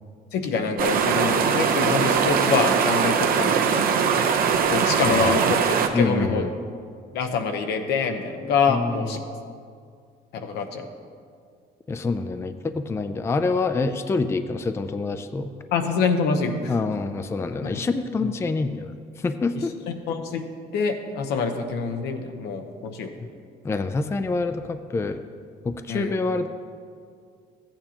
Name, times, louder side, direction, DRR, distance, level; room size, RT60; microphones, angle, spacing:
voice 1, 0.3-3.8 4.7-6.4 7.1-9.2 10.3-10.9 15.7-16.7 17.6-17.8 18.2-18.3 20.1-20.4 20.7-23.1 25.9-26.2, left 5 dB, 80° left, 5 dB, 0.9 m, -25 dB
sound 1, 0.8-5.9, right 6 dB, 60° right, 0.8 m, -21 dB
voice 2, 5.1-5.4 5.9-6.5 8.7-9.2 11.9-15.5 16.7-18.9 19.2-19.7 23.6-25.2 25.6-26.5, left 3 dB, 15° left, 9 dB, 0.4 m, -26 dB
14.0 x 8.9 x 2.9 m, 2.2 s
cardioid pair, 110°, 17 cm